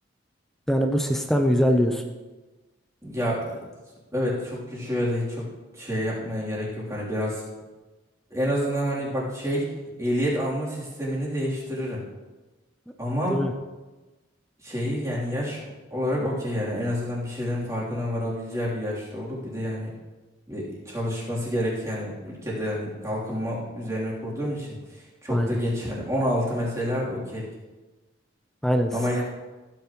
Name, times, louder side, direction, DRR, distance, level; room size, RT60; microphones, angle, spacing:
voice 1, 0.7-2.0 13.3-13.5 25.3-25.5 28.6-28.9, equal, ahead, 4 dB, 0.6 m, -22 dB
voice 2, 3.0-3.6 4.1-5.5 5.7-7.4 8.3-9.7 10.0-12.0 13.0-13.4 14.6-19.9 20.5-27.5 28.9-29.2, equal, 15° right, -7 dB, 3.2 m, -28 dB
15.5 x 9.0 x 3.1 m, 1.2 s
head